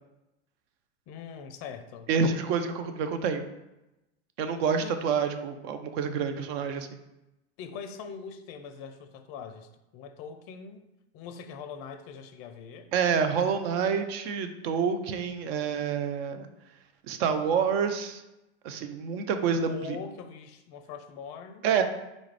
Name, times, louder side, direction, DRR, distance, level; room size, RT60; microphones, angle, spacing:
voice 1, 1.1-2.1 4.8-5.0 7.6-10.9 11.1-12.9 19.6-21.7, left 6 dB, 40° left, 9 dB, 0.4 m, -42 dB
voice 2, 2.1-3.4 4.4-6.9 12.9-16.5 17.1-18.2 18.6-20.0 21.6-21.8, right 6 dB, 60° right, 8 dB, 0.5 m, -28 dB
3.9 x 2.4 x 3.3 m, 0.95 s
hypercardioid pair, 100°, 35 cm